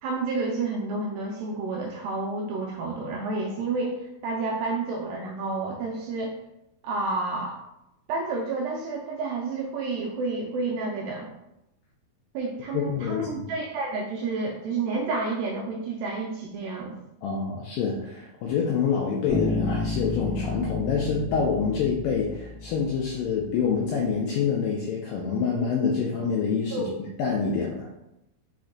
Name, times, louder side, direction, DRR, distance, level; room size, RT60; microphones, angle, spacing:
voice 1, 0.0-6.3 6.8-7.6 8.1-11.3 12.3-16.9 26.7-26.9, right 3 dB, 85° right, -1 dB, 2.0 m, -30 dB
voice 2, 12.7-13.5 17.2-26.8 27.2-27.9, left 6 dB, 85° left, -2 dB, 1.9 m, -26 dB
Bass guitar, 19.3-23.1, left 3 dB, 70° left, 0.8 m, -31 dB
5.9 x 2.1 x 3.7 m, 0.86 s
omnidirectional pair, 4.4 m